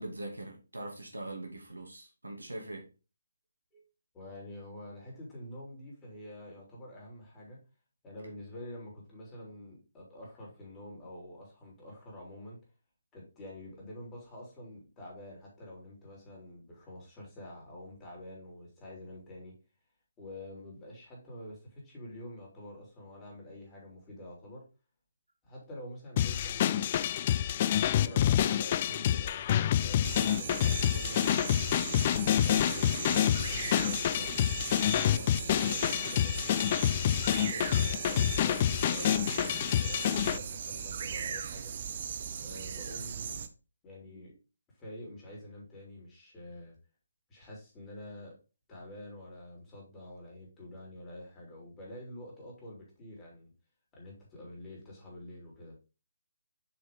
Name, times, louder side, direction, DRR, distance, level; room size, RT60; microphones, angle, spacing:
voice 1, 0.0-2.8 44.0-44.3, right 1 dB, 80° right, 2.6 m, -42 dB
voice 2, 4.1-7.6 8.0-12.6 13.1-19.5 20.2-24.6 25.4-27.1 27.9-31.5 32.0-34.4 34.9-36.4 37.1-41.7 42.4-43.4 43.8-44.3 44.8-46.8 47.3-48.3 48.7-53.5 53.9-55.8, left 1 dB, 15° left, 4.0 m, -47 dB
sound 1, 26.2-40.4, left 11 dB, 35° left, 0.3 m, -28 dB
sound 2, 30.0-43.5, right 7 dB, 40° right, 0.8 m, -38 dB
6.8 x 5.8 x 3.7 m
figure-of-eight pair, 145°, 0 cm